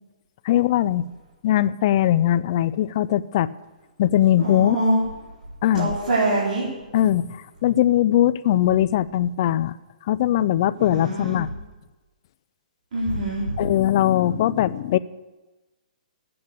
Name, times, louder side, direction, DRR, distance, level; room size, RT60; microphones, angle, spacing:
voice 1, 0.4-1.0 1.4-3.5 4.0-4.8 5.6-5.9 6.9-9.7 10.1-11.5 13.6-15.0, left 12 dB, 35° left, 14 dB, 0.4 m, -20 dB
voice 2, 4.4-5.0 5.7-6.7 10.8-11.4 12.9-13.6, right 1 dB, 60° right, -7 dB, 4.0 m, -24 dB
14.0 x 8.6 x 8.1 m, 1.2 s
hypercardioid pair, 170°, 4 cm